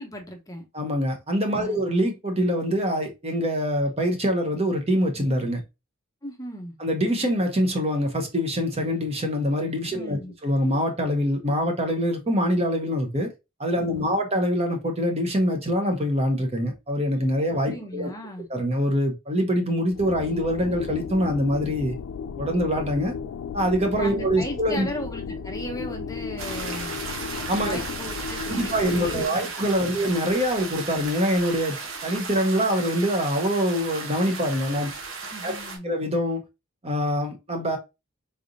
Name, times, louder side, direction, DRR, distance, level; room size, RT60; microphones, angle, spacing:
voice 1, 0.0-0.7 1.5-1.8 6.2-6.7 9.9-10.3 13.8-14.2 17.7-18.5 24.0-27.0 27.6-29.5 29.8-30.1 35.3-36.0, equal, 15° left, 0.7 m, -37 dB
voice 2, 0.7-5.6 6.8-13.3 13.6-18.1 18.5-22.0 22.4-23.1 23.5-24.9 27.5-27.8 28.5-31.8 32.0-34.9 35.4-35.6 35.8-36.4 36.8-37.8, equal, 30° right, 0.9 m, -24 dB
sound 1, 19.9-29.2, left 6 dB, 80° left, 0.3 m, -35 dB
sound 2, 26.4-35.8, right 4 dB, 75° right, 1.0 m, -35 dB
3.9 x 3.4 x 2.5 m
head